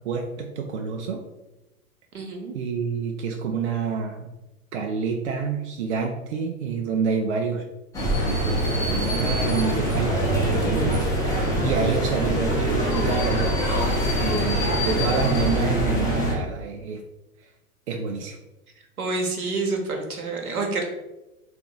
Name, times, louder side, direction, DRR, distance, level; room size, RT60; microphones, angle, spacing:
voice 1, 0.0-1.2 2.5-4.3 4.7-7.6 8.2-13.5 14.2-17.0 17.9-18.4, right 5 dB, 55° right, 3 dB, 0.5 m, -28 dB
voice 2, 2.1-2.6 19.0-20.8, right 3 dB, 75° right, 2 dB, 1.0 m, -28 dB
sound 1, 7.9-16.3, equal, 10° left, 0.7 m, -23 dB
3.8 x 2.5 x 3.6 m, 1.0 s
figure-of-eight pair, 95°, 44 cm